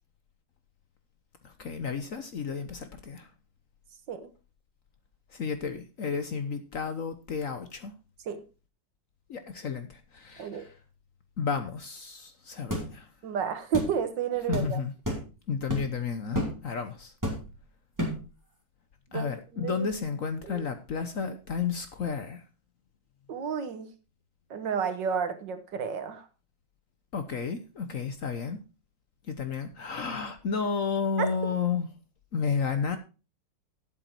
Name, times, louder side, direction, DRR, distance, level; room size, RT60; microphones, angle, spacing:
voice 1, 1.4-3.3 5.3-7.9 9.3-10.7 11.4-13.1 14.5-14.9 15.5-17.1 19.1-22.4 27.1-28.6 29.3-31.9 32.3-33.0, left 5 dB, 50° left, 1.1 m, -32 dB
sound 1, 12.7-12.9 13.7-13.9 14.5-14.7 15.0-15.3 15.7-16.0 16.3-16.6 17.2-17.6 18.0-18.3, equal, 10° right, 3.3 m, -31 dB
voice 2, 13.2-14.8 19.1-19.9 20.5-20.6 23.3-23.9 24.5-26.3 31.2-31.3, right 7 dB, 70° right, 1.9 m, -31 dB
12.0 x 8.2 x 4.5 m
omnidirectional pair, 2.1 m